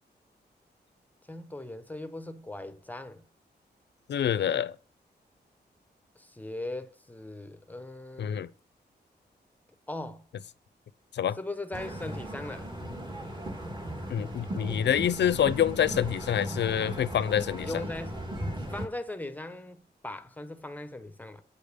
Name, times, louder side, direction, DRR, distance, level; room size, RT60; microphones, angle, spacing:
voice 1, 1.3-3.2 6.2-8.4 9.9-10.3 11.4-12.7 17.6-18.2 18.7-21.4, left 2 dB, 10° left, 0.8 m, -39 dB
voice 2, 4.1-4.8 8.2-8.5 11.1-11.4 14.1-17.8, left 9 dB, 75° left, 0.6 m, -27 dB
sound 1, 11.7-18.9, right 1 dB, 25° right, 1.8 m, -37 dB
8.6 x 5.2 x 6.7 m
wide cardioid pair, 155°, 18 cm